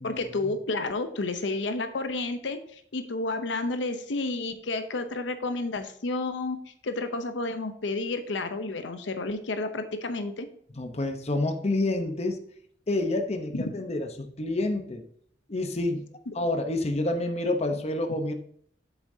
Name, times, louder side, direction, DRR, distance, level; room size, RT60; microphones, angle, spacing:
voice 1, 0.0-10.5 13.5-13.6 16.3-16.4, left 2 dB, 80° left, 9 dB, 0.7 m, -31 dB
voice 2, 10.8-12.4 12.9-15.0 15.5-16.0 16.3-18.3, left 2 dB, 35° left, 6 dB, 0.8 m, -28 dB
8.1 x 7.2 x 2.7 m, 0.64 s
head